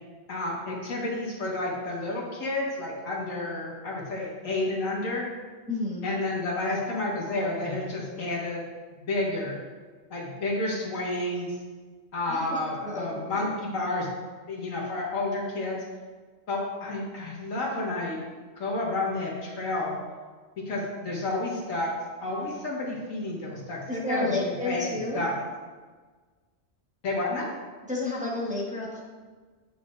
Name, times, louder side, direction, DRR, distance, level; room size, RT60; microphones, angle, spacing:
voice 1, 0.3-5.2 6.0-8.6 8.9-9.6 10.1-11.6 12.1-14.1 14.5-15.8 16.5-18.2 18.6-20.0 20.7-21.9 22.2-24.8 25.1-25.4 27.0-27.5, left 2 dB, 85° left, -4 dB, 2.0 m, -30 dB
voice 2, 5.7-6.1 12.3-12.6 12.8-13.1 13.3-13.5 23.9-25.2 27.9-29.0, left 2 dB, 5° right, -5 dB, 1.2 m, -30 dB
9.3 x 5.9 x 2.6 m, 1.4 s
omnidirectional pair, 1.3 m